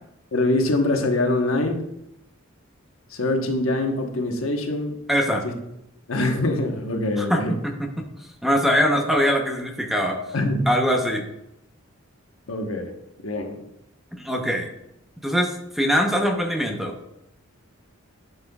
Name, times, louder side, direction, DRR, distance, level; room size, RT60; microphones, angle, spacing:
voice 1, 0.3-1.9 3.1-5.0 5.4-5.5 6.1-7.6 10.3-10.7 12.5-12.9 13.2-13.6, left 2 dB, 75° left, 3 dB, 1.2 m, -24 dB
voice 2, 5.1-5.4 7.2-7.4 8.4-10.2 10.7-11.2 14.2-14.7 15.2-16.9, equal, ahead, 2 dB, 0.8 m, -22 dB
11.5 x 5.6 x 2.3 m, 0.82 s
head